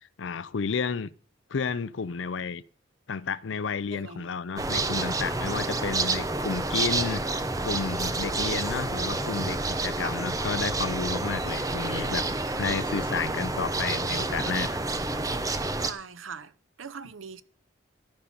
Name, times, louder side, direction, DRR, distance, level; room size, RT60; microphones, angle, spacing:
voice 1, 0.2-1.1 1.5-2.6 3.1-12.3 12.6-14.8, left 5 dB, 70° left, 0.5 m, -31 dB
voice 2, 3.9-4.3 10.0-10.1 15.8-16.5 16.8-17.4, right 5 dB, 85° right, 0.8 m, -41 dB
sound 1, 4.6-15.9, right 2 dB, 15° right, 0.7 m, -29 dB
14.0 x 5.7 x 6.8 m
head